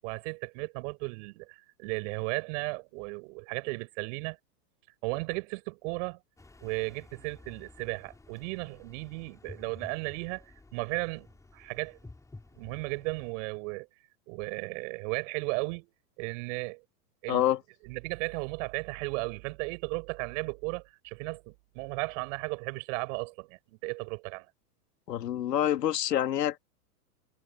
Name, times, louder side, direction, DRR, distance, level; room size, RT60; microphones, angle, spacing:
voice 1, 0.0-4.4 5.0-6.2 6.6-10.4 10.7-12.0 12.5-13.9 14.3-15.9 16.2-16.8 17.2-17.5 17.8-24.5, right 29 dB, 50° right, 7.5 m, -35 dB
sound 1, 6.4-13.3, left 2 dB, 5° left, 5.9 m, -52 dB
voice 2, 17.3-17.6 25.1-26.6, left 11 dB, 85° left, 2.4 m, -27 dB
hypercardioid pair, 130°, 47 cm